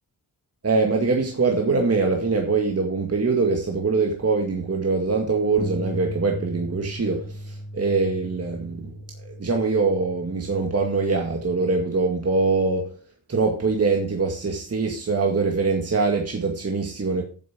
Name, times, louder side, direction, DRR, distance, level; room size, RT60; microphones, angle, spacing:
voice 1, 0.6-8.9 9.3-12.9 13.3-17.2, right 4 dB, 35° right, 2.0 m, -23 dB
sound 1, 5.6-11.8, equal, 5° left, 1.4 m, -37 dB
8.5 x 7.4 x 6.3 m
cardioid pair, 90°, 42 cm